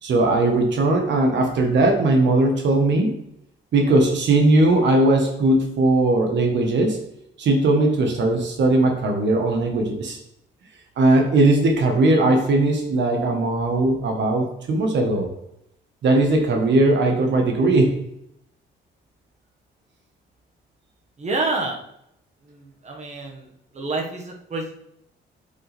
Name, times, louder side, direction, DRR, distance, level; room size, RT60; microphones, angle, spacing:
voice 1, 0.0-3.1 3.7-7.0 7.4-10.2 11.0-15.3 16.0-17.9, right 2 dB, 65° right, 2 dB, 1.3 m, -19 dB
voice 2, 21.2-21.8 22.5-23.5 23.7-24.7, right 3 dB, 35° right, 1 dB, 1.6 m, -28 dB
8.3 x 5.5 x 3.4 m, 0.78 s
cardioid pair, 90°, 20 cm